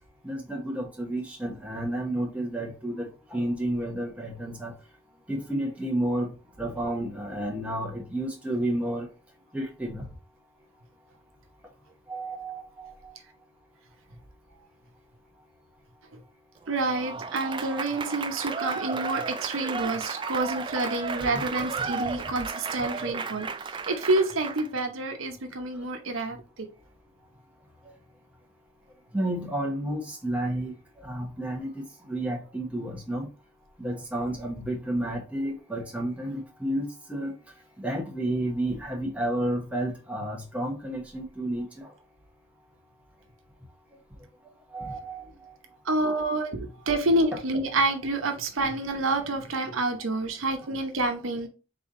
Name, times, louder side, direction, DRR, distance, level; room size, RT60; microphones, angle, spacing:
voice 1, 0.2-4.7 5.3-9.1 9.5-10.0 12.1-13.2 21.3-21.4 21.8-21.9 29.1-33.3 33.8-37.3 37.8-41.9 44.7-45.6, right 1 dB, 5° right, 1.0 m, -31 dB
Applause / Crowd, 16.7-24.8, right 5 dB, 25° right, 0.3 m, -34 dB
voice 2, 16.7-23.5 23.9-26.7 45.8-51.5, right 2 dB, 85° right, 0.9 m, -28 dB
4.1 x 3.4 x 3.6 m
head